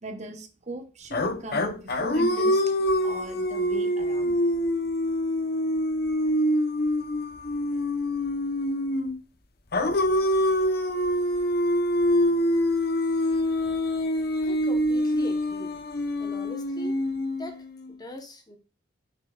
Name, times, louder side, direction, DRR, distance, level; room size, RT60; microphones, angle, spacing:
voice 1, 0.0-2.6 3.0-4.3, right 1 dB, 35° right, 7 dB, 0.9 m, -38 dB
sound 1, 1.1-9.2 9.7-17.8, left 1 dB, 50° left, 0.8 m, -25 dB
voice 2, 14.4-15.8 16.2-17.0 17.4-18.6, left 1 dB, 20° left, 5 dB, 1.1 m, -41 dB
7.4 x 6.4 x 2.4 m, 0.34 s
head